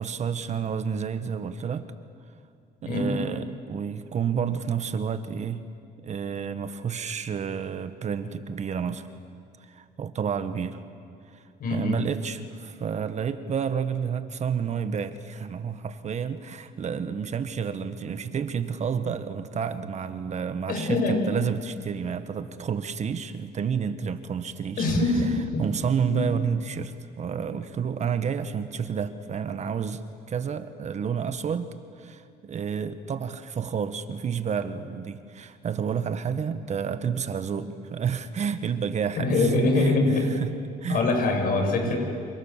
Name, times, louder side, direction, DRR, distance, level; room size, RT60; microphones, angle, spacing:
voice 1, 0.0-1.9 2.8-5.7 6.0-9.1 9.6-10.8 11.3-11.4 11.7-24.8 25.6-30.0 30.3-31.7 32.0-40.5 40.8-41.0 41.9-42.0, right 7 dB, 45° right, 10 dB, 1.4 m, -30 dB
voice 2, 11.6-12.0 20.7-21.2 24.8-25.3 25.5-25.6 26.1-26.2 39.2-40.2 40.9-42.0, left 2 dB, 55° left, 3 dB, 7.3 m, -23 dB
29.0 x 27.5 x 7.4 m, 2.3 s
cardioid pair, 110°, 17 cm